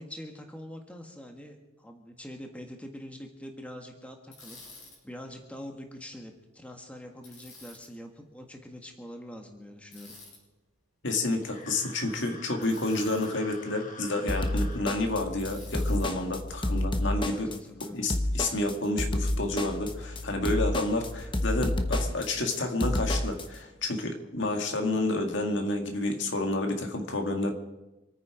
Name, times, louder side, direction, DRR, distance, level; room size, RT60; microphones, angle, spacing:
voice 1, 0.0-4.6 5.0-10.2 17.0-18.1, equal, 5° left, 3 dB, 1.5 m, -44 dB
Bicycle, 4.3-5.0 7.2-7.9 9.9-10.4 12.6-13.3 15.4-16.1, left 2 dB, 90° left, 6.6 m, -49 dB
voice 2, 11.0-17.5 17.9-27.5, left 2 dB, 60° left, 4 dB, 2.0 m, -30 dB
sound 1, 11.3-14.8, left 3 dB, 40° left, 2.1 m, -47 dB
sound 2, 14.3-23.5, left 1 dB, 25° left, 1.1 m, -30 dB
26.5 x 9.6 x 5.0 m, 1.0 s
head